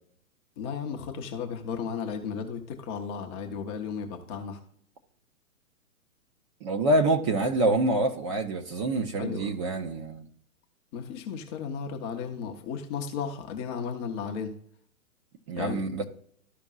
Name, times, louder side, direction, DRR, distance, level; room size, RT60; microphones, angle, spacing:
voice 1, 0.6-4.6 9.2-9.5 10.9-14.5 15.6-15.8, left 6 dB, 20° left, 0.6 m, -34 dB
voice 2, 6.6-10.3 15.5-16.0, right 2 dB, 25° right, 0.6 m, -26 dB
13.5 x 5.2 x 2.4 m
figure-of-eight pair, 125°, 42 cm